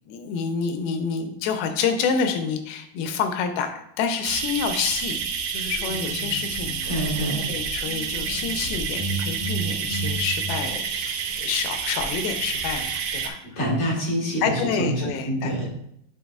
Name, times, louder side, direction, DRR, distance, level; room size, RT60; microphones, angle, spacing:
voice 1, 0.1-5.2 5.5-6.9 7.5-13.4 14.4-15.7, left 6 dB, 90° left, 6 dB, 2.6 m, -28 dB
sound 1, 4.2-13.3, right 6 dB, 75° right, 2.3 m, -29 dB
sound 2, 5.8-7.6 7.9-10.7, right 2 dB, 55° left, 3.3 m, -33 dB
voice 2, 6.9-7.5 13.6-15.7, equal, 40° left, -5 dB, 2.0 m, -26 dB
11.5 x 4.0 x 2.4 m, 0.74 s
omnidirectional pair, 4.3 m